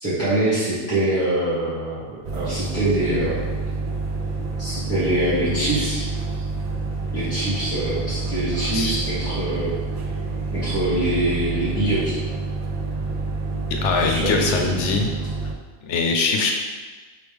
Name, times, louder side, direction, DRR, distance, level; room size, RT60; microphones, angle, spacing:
voice 1, 0.0-3.5 4.6-6.1 7.1-9.7 10.5-12.1 14.0-14.7, right 1 dB, 15° right, -13 dB, 1.2 m, -24 dB
sound 1, 2.2-15.5, right 3 dB, 65° right, 0.4 m, -28 dB
voice 2, 13.7-15.2 15.9-16.5, left 4 dB, 80° left, 2 dB, 0.9 m, -22 dB
4.6 x 3.1 x 3.4 m, 1.3 s
omnidirectional pair, 1.2 m